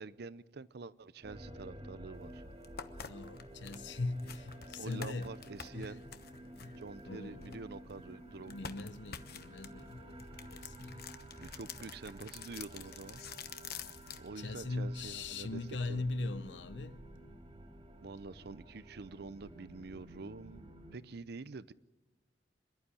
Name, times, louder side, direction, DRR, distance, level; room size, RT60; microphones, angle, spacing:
voice 1, 0.0-2.4 4.8-6.0 6.8-8.7 11.4-13.3 14.2-15.6 15.9-16.0 18.0-21.7, right 3 dB, 60° right, 0.6 m, -47 dB
sound 1, 1.2-21.0, right 1 dB, 35° right, 2.4 m, -52 dB
sound 2, 2.1-2.2 2.6-8.0 8.5-14.3, left 7 dB, 60° left, 1.1 m, -48 dB
voice 2, 2.9-5.3 5.7-6.0 6.6-7.6 8.4-11.1 14.1-17.0, left 2 dB, 80° left, 0.8 m, -41 dB
27.0 x 11.5 x 9.8 m
head